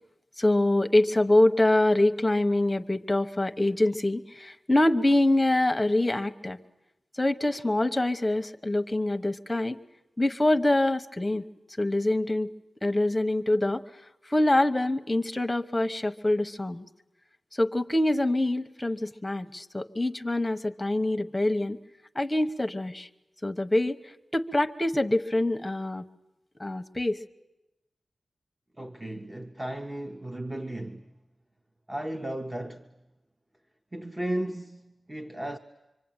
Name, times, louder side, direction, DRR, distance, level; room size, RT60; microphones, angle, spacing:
voice 1, 0.4-6.6 7.1-9.8 10.2-11.4 11.8-12.5 12.8-13.8 14.3-16.8 17.6-21.8 22.1-23.1 23.4-24.0 24.3-26.0 26.6-27.2, left 1 dB, 10° left, 1.0 m, -25 dB
voice 2, 28.8-31.2 31.9-32.9 33.9-35.6, right 1 dB, 15° right, 0.9 m, -35 dB
25.0 x 25.0 x 8.9 m
wide cardioid pair, 135°, 0 cm